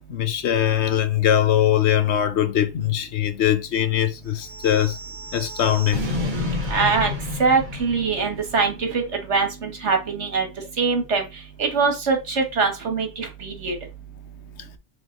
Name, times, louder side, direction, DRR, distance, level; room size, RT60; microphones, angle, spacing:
voice 1, 0.1-5.0 5.3-6.1, left 10 dB, 70° left, 1.0 m, -21 dB
sound 1, 4.4-8.7, left 2 dB, 45° right, 1.5 m, -30 dB
voice 2, 6.7-7.1 7.4-10.5 10.8-11.2 11.6-13.8, right 4 dB, 75° right, 1.9 m, -23 dB
6.4 x 3.4 x 4.6 m
omnidirectional pair, 1.2 m